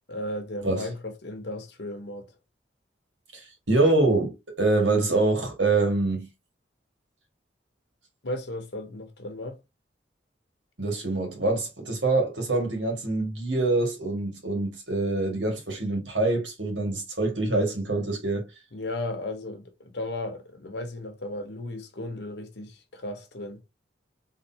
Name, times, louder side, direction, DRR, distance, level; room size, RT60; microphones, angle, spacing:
voice 1, 0.1-2.3 8.2-9.6 18.7-23.6, left 1 dB, 70° left, 1.0 m, -35 dB
voice 2, 3.3-6.3 10.8-18.5, right 2 dB, 85° right, 1.9 m, -25 dB
3.8 x 3.3 x 2.8 m
head